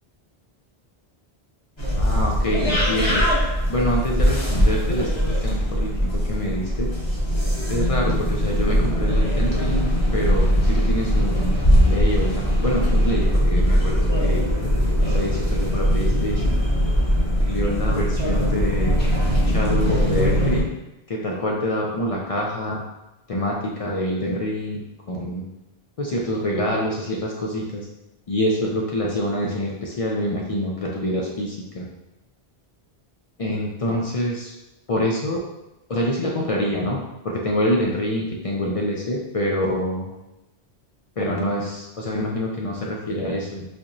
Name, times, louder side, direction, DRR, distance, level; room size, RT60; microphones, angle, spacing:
sound 1, 1.8-20.6, equal, 30° left, 0.8 m, -21 dB
voice 1, 1.9-3.2 3.7-6.9 7.7-9.9 10.1-14.4 15.0-16.6 17.5-18.9 19.5-20.7 21.1-22.8 23.3-24.8 25.1-25.5 26.0-27.9 28.3-31.9 33.4-34.5 34.9-35.4 35.9-40.1 41.2-43.7, left 1 dB, 50° left, -2 dB, 0.4 m, -26 dB
4.2 x 2.9 x 2.5 m, 0.95 s
omnidirectional pair, 1.1 m